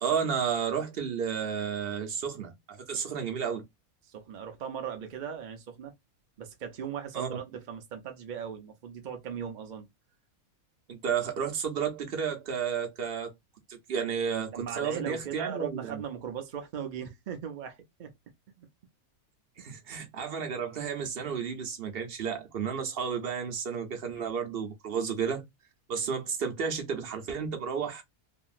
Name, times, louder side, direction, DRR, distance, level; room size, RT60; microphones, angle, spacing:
voice 1, 0.0-3.6 7.1-7.4 10.9-13.3 13.7-16.0 19.6-25.4 25.9-28.0, right 7 dB, 50° right, 0.8 m, -32 dB
voice 2, 4.0-5.9 6.4-9.9 14.5-18.1 18.6-18.7 19.6-19.7, right 8 dB, 70° right, 0.4 m, -38 dB
2.9 x 2.6 x 2.3 m
omnidirectional pair, 1.5 m